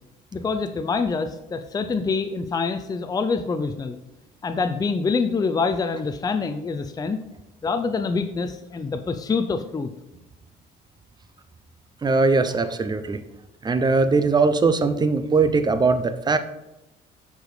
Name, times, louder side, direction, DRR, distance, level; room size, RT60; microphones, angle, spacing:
voice 1, 0.3-4.0 4.4-7.2 7.6-9.9, left 4 dB, 20° left, 8 dB, 0.6 m, -25 dB
voice 2, 12.0-13.2 13.6-16.4, right 4 dB, 25° right, 11 dB, 0.7 m, -20 dB
10.5 x 4.9 x 5.0 m, 0.96 s
cardioid pair, 110°, 17 cm